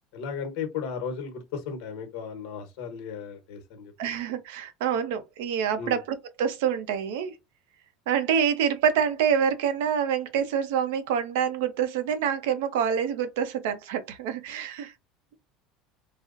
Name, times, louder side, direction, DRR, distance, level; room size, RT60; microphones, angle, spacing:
voice 1, 0.1-3.9 5.8-6.0, left 6 dB, 60° left, 1.0 m, -35 dB
voice 2, 4.0-7.3 8.1-14.9, right 8 dB, 90° right, 0.6 m, -26 dB
4.1 x 2.0 x 2.5 m
cardioid pair, 175°, 0 cm